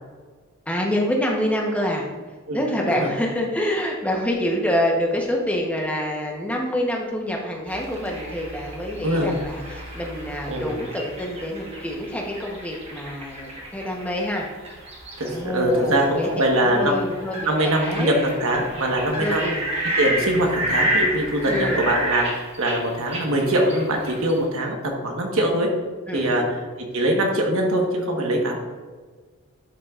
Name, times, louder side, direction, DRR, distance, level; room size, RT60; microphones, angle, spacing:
voice 1, 0.7-2.1 2.5-14.5 15.2-18.2 19.2-19.7 21.5-21.8 26.1-26.4, equal, 5° left, -1 dB, 1.0 m, -26 dB
sound 1, 7.7-24.4, equal, 25° right, 1.3 m, -31 dB
voice 2, 15.2-17.0 17.4-19.5 20.0-25.7 26.1-26.6 26.9-28.6, right 1 dB, 65° right, 1 dB, 1.4 m, -22 dB
11.0 x 5.6 x 2.5 m, 1.4 s
head